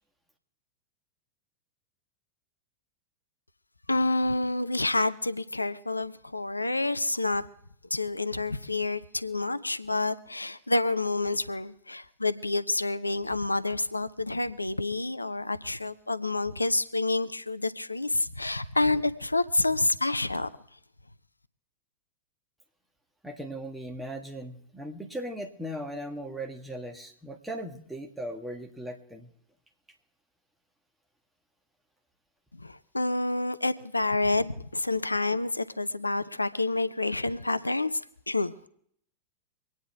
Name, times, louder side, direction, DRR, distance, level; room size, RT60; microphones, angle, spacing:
voice 1, 3.9-7.5 7.9-20.5 32.5-38.7, left 2 dB, 85° left, 14 dB, 0.5 m, -28 dB
voice 2, 23.2-29.3, right 1 dB, 5° right, 3 dB, 1.6 m, -38 dB
24.5 x 9.4 x 3.4 m, 0.67 s
figure-of-eight pair, 90°, 0 cm